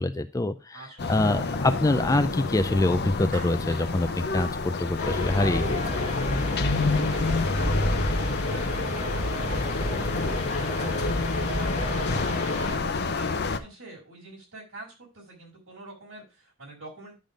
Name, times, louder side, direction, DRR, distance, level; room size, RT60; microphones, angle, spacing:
voice 1, 0.0-5.9, left 2 dB, 15° left, 10 dB, 0.4 m, -25 dB
voice 2, 0.7-1.5 6.8-17.1, right 2 dB, 70° right, -4 dB, 5.4 m, -46 dB
sound 1, 1.0-13.6, left 3 dB, 50° left, 0.7 m, -29 dB
Clapping, 3.3-5.6, right 3 dB, 55° right, 3.0 m, -46 dB
sound 2, 5.0-12.7, left 1 dB, 35° left, 1.6 m, -30 dB
10.5 x 3.8 x 5.0 m, 0.29 s
head